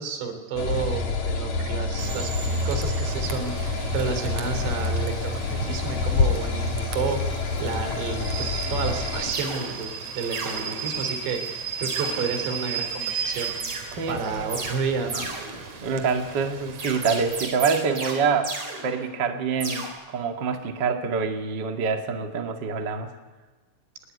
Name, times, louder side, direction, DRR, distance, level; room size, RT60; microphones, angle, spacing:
voice 1, 0.0-2.3 2.7-13.6 14.1-15.3, right 5 dB, 65° right, 7 dB, 5.2 m, -31 dB
sound 1, 0.6-9.3, left 3 dB, 45° left, 2.8 m, -27 dB
Rain / Train, 2.0-17.5, right 6 dB, 45° right, 2.6 m, -35 dB
sound 2, 8.6-8.7 9.3-10.0 10.3-11.2 11.8-12.6 13.3-13.9 14.5-14.8 15.1-15.9 16.8-19.3 19.6-19.9, right 3 dB, 30° right, 4.7 m, -34 dB
voice 2, 13.9-14.5 15.8-18.5 18.8-23.1, right 5 dB, 85° right, 4 dB, 0.9 m, -26 dB
24.5 x 20.0 x 9.6 m, 1.2 s
omnidirectional pair, 5.6 m